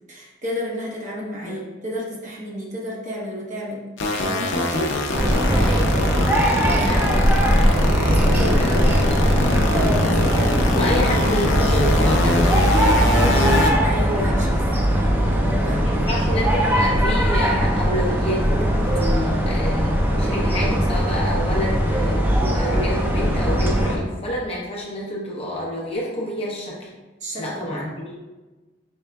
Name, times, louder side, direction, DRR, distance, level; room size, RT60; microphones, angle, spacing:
voice 1, 0.1-3.8 4.2-5.0 6.7-6.9 7.9-8.9 9.7-10.6 13.8-14.5 14.8-16.2 27.2-27.7, equal, 40° right, -4 dB, 1.0 m, -31 dB
sound 1, 4.0-13.7, left 2 dB, 80° left, 0.6 m, -24 dB
sound 2, 5.1-24.0, equal, 10° right, 0.4 m, -19 dB
voice 2, 5.6-9.3 10.7-13.4 14.1-14.3 15.8-18.5 18.9-26.9 27.4-28.2, left 1 dB, 30° left, -5 dB, 0.9 m, -29 dB
5.4 x 3.5 x 2.3 m, 1.2 s
head